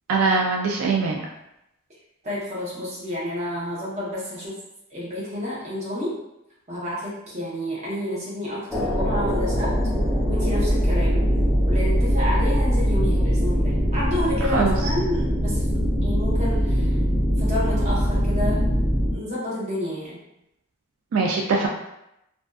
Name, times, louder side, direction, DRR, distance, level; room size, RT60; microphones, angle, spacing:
voice 1, 0.1-1.2 14.5-14.8 21.1-21.7, right 4 dB, 80° right, 0 dB, 0.3 m, -22 dB
voice 2, 2.2-4.5 4.9-6.2 6.7-9.7 10.3-11.2 11.6-15.6 16.0-16.9 17.4-18.6 19.1-20.2, left 1 dB, 35° right, -7 dB, 0.8 m, -29 dB
sound 1, 8.7-19.1, equal, ahead, 0.4 m, -22 dB
2.5 x 2.3 x 2.3 m, 0.85 s
head